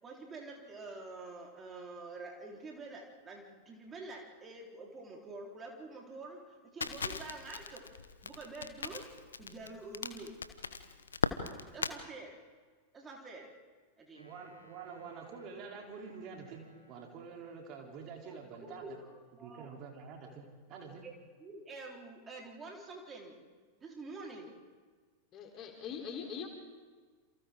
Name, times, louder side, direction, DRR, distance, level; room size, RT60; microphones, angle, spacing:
voice 1, 0.0-7.9 8.2-9.1 9.4-10.3 11.7-12.4 12.9-13.5 14.0-14.3 18.6-19.7 21.0-21.1 21.4-23.4 23.8-24.6, right 3 dB, 20° right, -1 dB, 4.2 m, -47 dB
Crackle, 6.8-12.0, left 5 dB, 70° left, 1.1 m, -38 dB
sound 1, 14.1-17.5, right 1 dB, 90° left, 2.4 m, -61 dB
voice 2, 14.2-19.0 19.3-21.0, right 5 dB, 40° right, 1 dB, 3.5 m, -47 dB
voice 3, 25.3-26.5, left 6 dB, 30° left, 1 dB, 3.7 m, -42 dB
28.5 x 28.5 x 3.8 m, 1.5 s
figure-of-eight pair, 90°, 0 cm